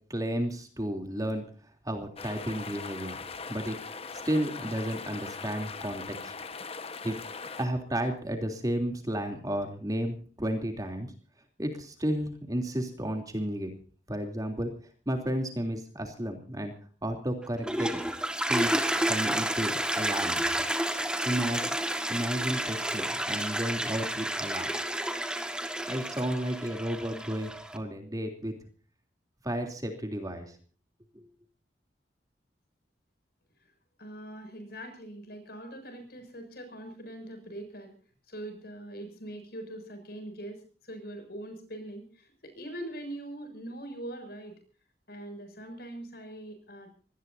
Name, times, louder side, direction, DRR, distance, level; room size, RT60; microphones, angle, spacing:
voice 1, 0.1-1.4 1.8-3.2 3.5-3.8 4.2-6.3 7.0-11.1 11.6-13.7 14.1-14.7 15.0-16.7 17.0-17.9 18.5-20.4 21.2-21.7 22.1-24.7 25.9-28.5 29.4-30.5 31.1-31.3, equal, 20° right, 4 dB, 3.3 m, -32 dB
sound 1, 2.2-7.6, left 4 dB, 35° left, 1.3 m, -40 dB
Toilet flush, 17.4-27.8, right 1 dB, 5° right, 1.8 m, -31 dB
voice 2, 34.0-37.9 38.3-40.6 40.8-44.6 45.1-46.9, right 1 dB, 60° left, 7 dB, 6.9 m, -42 dB
25.5 x 18.5 x 2.8 m, 0.41 s
head